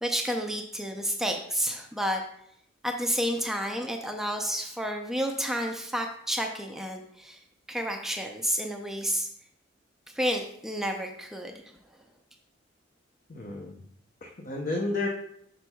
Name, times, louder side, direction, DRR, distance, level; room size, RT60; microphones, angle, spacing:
voice 1, 0.0-2.2 2.8-7.4 7.7-9.3 10.1-11.6, equal, ahead, 2 dB, 0.4 m, -30 dB
voice 2, 13.3-13.8 14.2-15.1, left 2 dB, 45° left, 0 dB, 0.7 m, -31 dB
6.9 x 6.1 x 2.2 m, 0.70 s
head